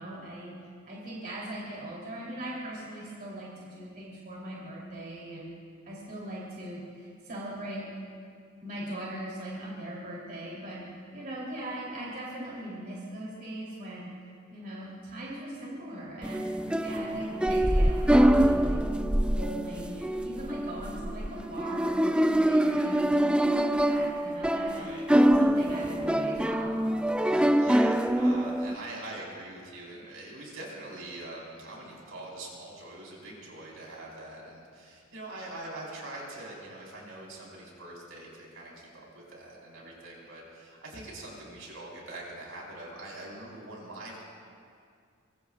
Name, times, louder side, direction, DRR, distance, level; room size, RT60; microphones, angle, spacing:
voice 1, 0.0-5.5 5.8-7.9 8.6-14.2 14.5-18.8 19.2-24.8 25.2-26.7, right 1 dB, 45° right, -6 dB, 3.4 m, -40 dB
sound 1, 16.2-28.8, right 1 dB, 5° right, 0.3 m, -25 dB
voice 2, 24.7-25.1 27.2-44.2, right 2 dB, 75° right, -4 dB, 4.6 m, -43 dB
24.0 x 23.0 x 2.5 m, 2.3 s
head